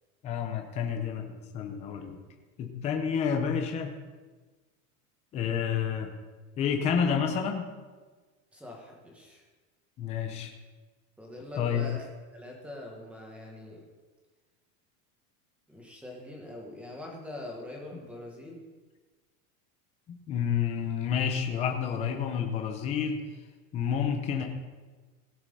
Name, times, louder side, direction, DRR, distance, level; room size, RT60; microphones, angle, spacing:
voice 1, 0.2-2.2 2.6-3.9 5.3-6.1 6.6-7.7 10.0-10.5 11.6-11.9 20.1-23.2 23.7-24.4, left 7 dB, 15° left, 3 dB, 0.7 m, -29 dB
voice 2, 8.5-9.4 11.2-13.9 15.7-18.6, left 1 dB, 5° right, -1 dB, 1.4 m, -43 dB
17.0 x 5.8 x 5.5 m, 1.3 s
supercardioid pair, 180°, 42 cm